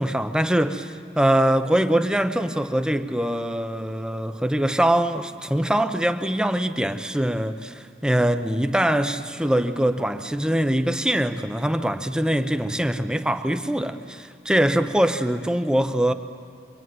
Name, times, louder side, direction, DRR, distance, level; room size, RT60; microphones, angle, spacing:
voice 1, 0.0-16.1, right 1 dB, 5° right, 0.8 m, -23 dB
25.5 x 23.0 x 9.3 m
head